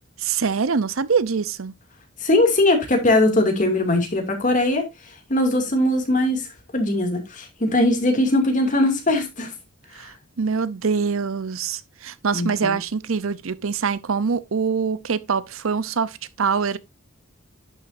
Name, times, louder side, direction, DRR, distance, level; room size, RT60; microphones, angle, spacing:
voice 1, 0.2-1.7 10.0-16.8, right 5 dB, 85° right, 0.7 m, -24 dB
voice 2, 2.2-4.9 5.3-9.5 9.9-10.1 12.3-12.8, left 1 dB, 40° left, 2.4 m, -20 dB
11.0 x 7.0 x 2.6 m
head